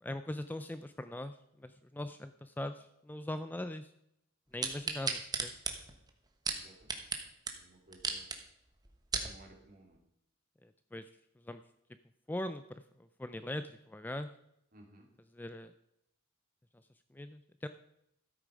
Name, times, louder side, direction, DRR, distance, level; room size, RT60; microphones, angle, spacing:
voice 1, 0.0-3.9 4.5-5.5 9.2-9.3 10.6-11.1 11.4-11.6 12.3-12.6 13.0-14.3 15.3-15.7 17.1-17.7, left 1 dB, 10° left, 10 dB, 0.3 m, -41 dB
sound 1, 4.6-7.2 7.5-7.6 7.9-8.4 8.8-9.3 9.9-10.0, right 4 dB, 20° right, 1.1 m, -35 dB
voice 2, 6.5-7.0 7.5-8.4 9.2-10.0 14.7-15.1, right 1 dB, 40° right, 0 dB, 2.9 m, -58 dB
13.5 x 8.3 x 5.1 m, 0.78 s
head